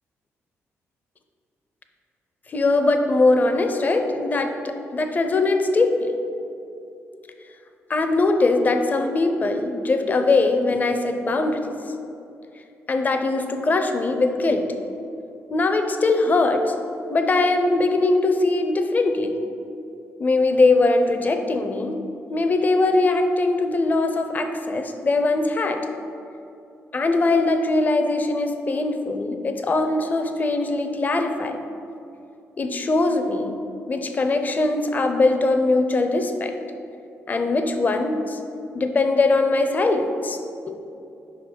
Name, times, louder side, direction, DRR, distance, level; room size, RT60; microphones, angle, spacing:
voice 1, 2.5-6.1 7.9-11.6 12.9-14.7 15.5-16.7 17.1-19.3 20.2-22.0 22.3-25.9 26.9-31.6 32.6-33.6 33.9-36.5 37.3-38.4 38.7-40.4 40.7-40.8, left 2 dB, 35° left, 6 dB, 0.5 m, -21 dB
5.2 x 3.7 x 5.2 m, 2.7 s
cardioid pair, 100°, 5 cm